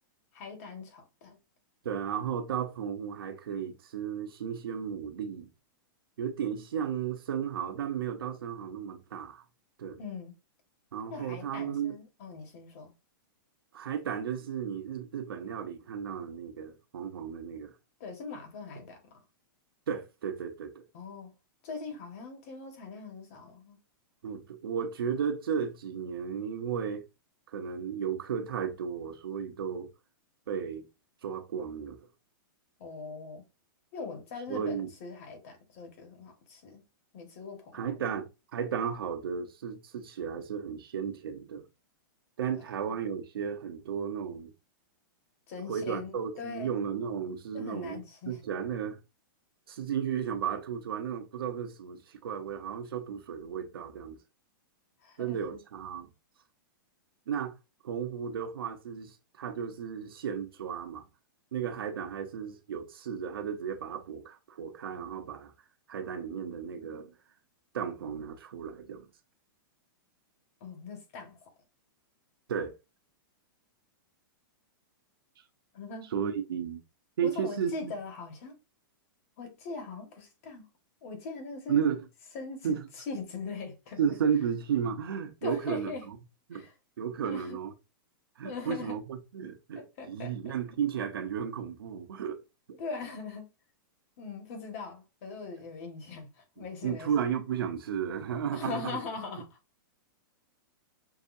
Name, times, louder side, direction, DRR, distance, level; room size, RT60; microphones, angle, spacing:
voice 1, 0.3-1.4 10.0-10.3 11.0-12.9 18.0-19.2 20.9-21.3 21.6-23.8 32.8-33.4 33.9-36.8 37.1-37.8 42.5-42.6 45.5-46.7 47.5-48.4 55.0-55.6 70.6-71.5 75.7-76.1 77.2-78.5 79.4-80.7 81.0-81.8 82.3-84.1 85.4-86.1 86.5-86.7 87.2-87.6 88.4-89.0 89.7-90.5 92.8-93.5 94.2-97.3 98.5-99.6, left 4 dB, 40° left, 1.5 m, -41 dB
voice 2, 1.8-5.5 6.2-9.4 9.8-10.0 10.9-11.9 13.7-17.7 19.9-20.8 24.2-27.0 27.5-29.9 30.5-30.9 31.2-32.1 34.5-34.9 37.7-41.6 42.4-44.5 45.7-49.0 49.7-54.2 55.2-56.1 57.3-57.5 57.8-61.0 61.5-65.5 65.9-67.1 67.7-69.1 72.5-72.8 76.1-76.8 77.2-77.9 81.7-82.1 82.6-82.9 84.0-86.2 86.5-86.7 87.0-87.7 88.4-89.8 90.1-92.4 92.7-92.8 96.6-99.0, right 7 dB, 85° right, 1.0 m, -34 dB
6.0 x 2.7 x 2.6 m
supercardioid pair, 170°, 12 cm